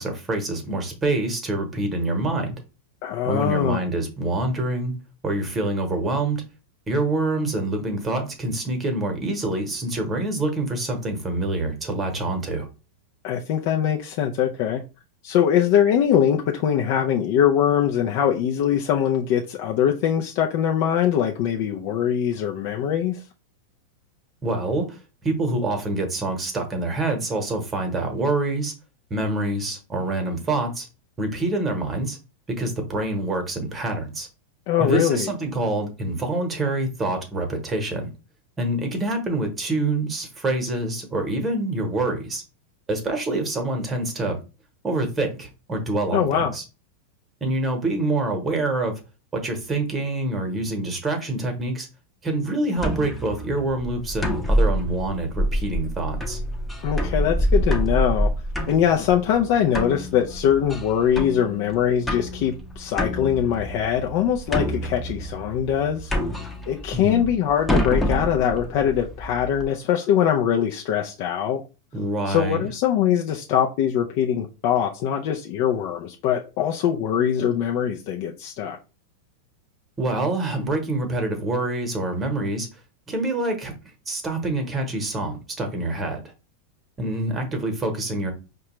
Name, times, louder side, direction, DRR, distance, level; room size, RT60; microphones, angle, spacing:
voice 1, 0.0-2.6 3.2-4.9 5.2-6.4 6.9-12.7 24.4-28.7 29.1-30.9 31.2-32.2 32.6-34.3 34.8-38.1 38.6-42.4 42.9-44.4 44.8-46.6 47.4-49.0 49.3-51.9 52.2-56.4 66.9-67.3 71.9-72.7 80.0-82.7 83.1-83.7 84.1-86.2 87.0-88.3, right 2 dB, 20° right, 1.0 m, -26 dB
voice 2, 3.0-3.8 13.2-14.8 15.2-23.2 34.7-35.3 46.1-46.5 56.8-58.3 58.7-66.1 66.7-71.6 72.3-78.8, left 9 dB, 55° left, 0.4 m, -22 dB
sound 1, 52.8-69.6, equal, 10° left, 0.7 m, -27 dB
4.7 x 2.2 x 3.0 m
hypercardioid pair, 125°, 0 cm